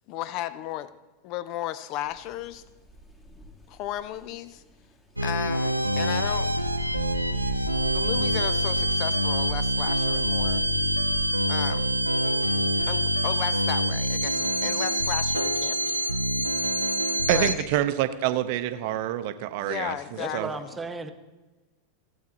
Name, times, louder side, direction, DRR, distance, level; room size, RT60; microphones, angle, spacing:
voice 1, 0.1-0.9 1.2-2.6 3.7-4.6 5.2-6.5 7.9-10.6 11.5-11.9 12.9-16.0 17.3-17.7 19.6-20.7, left 13 dB, 40° left, 15 dB, 0.5 m, -34 dB
sound 1, 2.1-13.0, right 1 dB, 20° left, 1.6 m, -41 dB
sound 2, 5.2-17.5, equal, 85° right, 0.5 m, -25 dB
voice 2, 17.3-20.0 20.3-20.5, right 13 dB, 45° right, 11 dB, 0.6 m, -26 dB
voice 3, 20.2-21.1, right 3 dB, 15° right, 8 dB, 0.8 m, -35 dB
15.5 x 8.3 x 4.0 m, 1.2 s
figure-of-eight pair, 90°, 0 cm